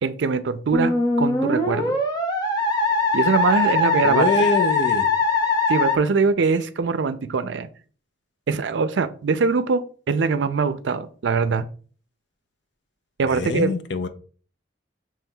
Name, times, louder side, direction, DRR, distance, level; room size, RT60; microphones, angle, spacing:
voice 1, 0.0-2.0 3.1-4.3 5.7-7.7 8.5-11.7 13.2-13.7, right 4 dB, 90° right, 0.4 m, -22 dB
Musical instrument, 0.7-6.0, left 2 dB, 20° left, 0.8 m, -21 dB
voice 2, 4.0-5.1 13.3-14.1, left 4 dB, 80° left, 0.5 m, -24 dB
7.1 x 3.1 x 2.3 m
head